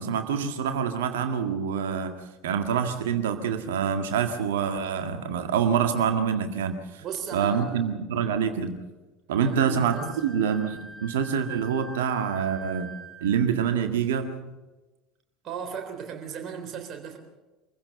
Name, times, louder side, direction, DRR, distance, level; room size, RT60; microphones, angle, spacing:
voice 1, 0.0-2.1 2.4-7.0 7.3-8.8 9.3-12.9 13.2-14.4, right 7 dB, 65° right, 7 dB, 1.9 m, -26 dB
voice 2, 7.0-7.9 9.4-10.1 15.4-17.2, right 7 dB, 40° right, 5 dB, 3.6 m, -36 dB
Wind instrument woodwind instrument, 9.9-13.6, right 3 dB, 5° right, 4.7 m, -44 dB
25.0 x 15.5 x 6.9 m, 1.2 s
figure-of-eight pair, 70°, 0 cm